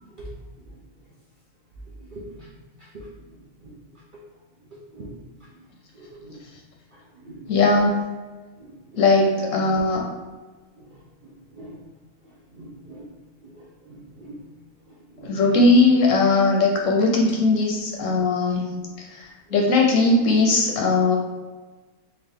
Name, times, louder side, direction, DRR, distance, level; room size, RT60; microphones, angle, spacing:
voice 1, 2.0-2.5 2.9-3.0 3.6-3.8 4.9-5.1 5.9-6.4 7.2-7.5 8.6-9.0 10.8-10.9 11.2-11.8 12.5-13.1 13.4-14.4 14.9-15.4, right 1 dB, 60° right, -6 dB, 0.5 m, -43 dB
voice 2, 7.5-8.0 9.0-10.0 15.2-18.7 19.1-19.2 19.5-21.2, left 3 dB, 65° left, 0 dB, 0.9 m, -19 dB
3.9 x 2.4 x 3.5 m, 1.3 s
omnidirectional pair, 1.6 m